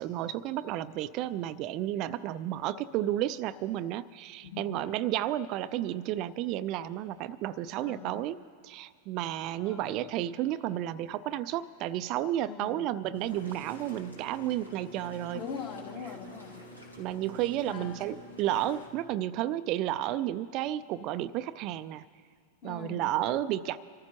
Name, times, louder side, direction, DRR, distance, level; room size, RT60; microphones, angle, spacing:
voice 1, 0.0-15.4 17.0-22.0 22.6-23.8, right 13 dB, 40° right, 14 dB, 0.4 m, -32 dB
voice 2, 7.8-8.1 9.6-10.0 12.4-12.8 15.3-16.5 17.7-18.0 22.6-23.0, left 6 dB, 40° left, 1 dB, 2.2 m, -41 dB
sound 1, 13.1-18.9, equal, 85° left, 2.3 m, -48 dB
25.0 x 14.5 x 3.0 m, 2.1 s
figure-of-eight pair, 90°, 0 cm